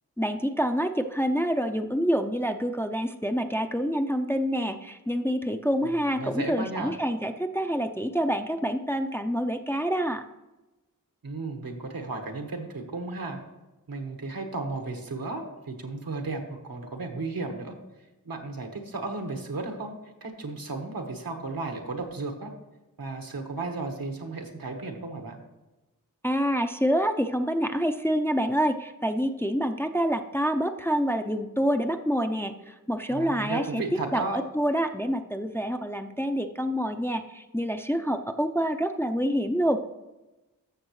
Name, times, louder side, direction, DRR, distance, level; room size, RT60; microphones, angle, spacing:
voice 1, 0.2-10.2 26.2-33.8 34.1-39.9, equal, 5° left, 6 dB, 0.5 m, -27 dB
voice 2, 5.9-6.9 11.2-13.4 13.9-17.7 18.2-19.9 20.2-22.5 23.0-25.4 33.1-34.4, right 3 dB, 80° right, 4 dB, 1.4 m, -34 dB
14.0 x 6.5 x 3.2 m, 1.1 s
wide cardioid pair, 70°, 35 cm